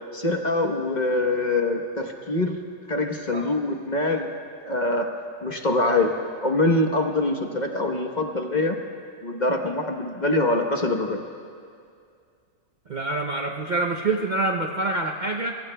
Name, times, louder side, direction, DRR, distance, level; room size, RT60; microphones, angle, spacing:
voice 1, 0.1-2.6 2.9-4.3 4.6-5.1 5.4-6.1 6.4-8.8 9.2-11.2, left 2 dB, 35° left, 2 dB, 1.1 m, -24 dB
voice 2, 12.9-15.6, right 2 dB, 45° right, 2 dB, 0.7 m, -26 dB
26.0 x 22.5 x 2.2 m, 2.3 s
omnidirectional pair, 1.4 m